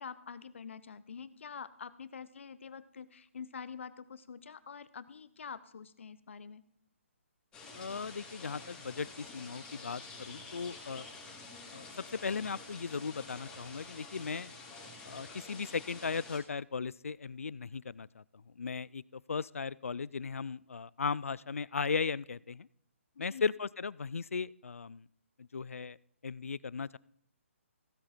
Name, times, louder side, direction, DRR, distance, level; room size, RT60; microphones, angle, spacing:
voice 1, 0.0-6.6 23.1-23.5, left 6 dB, 60° left, 16 dB, 0.8 m, -46 dB
sound 1, 7.5-16.4, left 3 dB, 15° left, 3.8 m, -49 dB
voice 2, 7.7-11.1 11.7-11.9 12.2-14.5 15.0-18.2 18.6-22.7 23.2-25.1 25.4-26.0 26.2-27.0, left 5 dB, 80° left, 23 dB, 0.4 m, -37 dB
15.5 x 8.7 x 4.5 m, 0.68 s
figure-of-eight pair, 145°, 7 cm